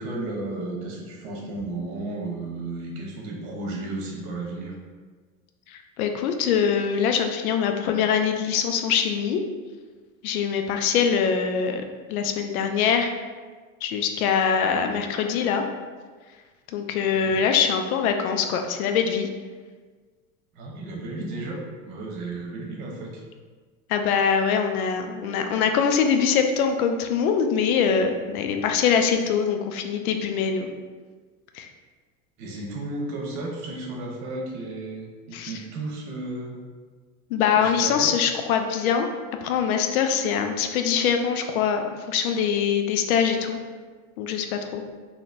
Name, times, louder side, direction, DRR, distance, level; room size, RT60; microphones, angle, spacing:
voice 1, 0.0-4.7 17.1-17.4 20.5-21.6 21.8-23.2 32.4-36.6 37.6-38.1, right 2 dB, 55° right, -1 dB, 1.1 m, -33 dB
voice 2, 5.7-9.4 10.2-13.1 13.8-15.6 16.7-19.3 23.9-30.7 31.5-31.7 35.3-35.5 37.3-39.1 39.4-43.6 44.2-44.8, left 7 dB, 80° left, 5 dB, 0.6 m, -23 dB
4.1 x 2.9 x 2.5 m, 1.5 s
hypercardioid pair, 90°, 43 cm